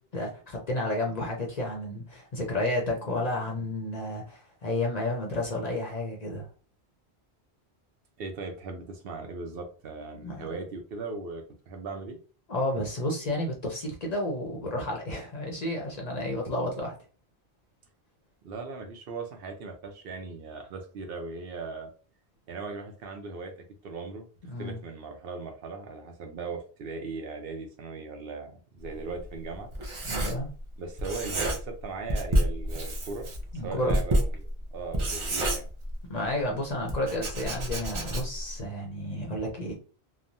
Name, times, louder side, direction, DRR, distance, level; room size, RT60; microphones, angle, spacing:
voice 1, 0.1-6.5 10.2-10.4 12.5-16.9 24.5-24.8 30.0-30.5 33.5-34.0 36.1-39.7, left 1 dB, 45° left, 0 dB, 0.6 m, -31 dB
voice 2, 8.2-12.2 18.4-21.9 22.5-23.5 23.8-29.7 30.8-35.7, right 4 dB, 65° right, 4 dB, 0.8 m, -38 dB
Writing, 28.8-30.7 31.0-31.8 32.1-36.3 36.9-38.5, right 1 dB, 40° right, 0.4 m, -29 dB
3.0 x 2.1 x 2.5 m, 0.38 s
omnidirectional pair, 1.1 m